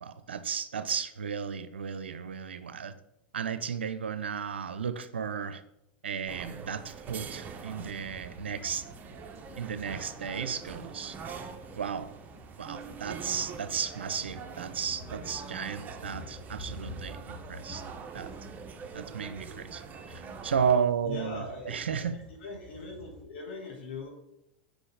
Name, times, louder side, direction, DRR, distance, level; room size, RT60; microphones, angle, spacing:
voice 1, 0.0-3.0 3.3-5.6 6.0-8.9 9.6-11.2 11.8-12.1 12.6-17.8 18.1-18.3 18.9-19.8 20.1-22.2, right 7 dB, 90° right, 12 dB, 0.5 m, -33 dB
sound 1, 6.3-20.8, right 5 dB, 30° right, 0.7 m, -44 dB
sound 2, 7.8-23.2, left 1 dB, 5° left, 2.2 m, -50 dB
voice 2, 21.0-24.1, left 3 dB, 70° left, 0 dB, 1.7 m, -41 dB
6.2 x 4.9 x 3.3 m, 0.82 s
hypercardioid pair, 100°, 6 cm